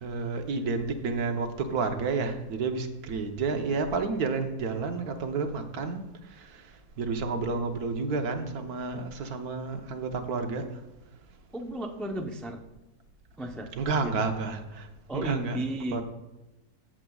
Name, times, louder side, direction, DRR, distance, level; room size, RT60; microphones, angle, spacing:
voice 1, 0.0-10.8 13.8-14.9 15.1-15.6 15.9-16.0, right 4 dB, 70° right, 6 dB, 1.4 m, -30 dB
voice 2, 11.5-12.6 13.4-13.7 14.0-14.1 15.1-16.0, right 1 dB, ahead, 3 dB, 0.3 m, -34 dB
15.0 x 7.7 x 2.3 m, 1.0 s
omnidirectional pair, 1.7 m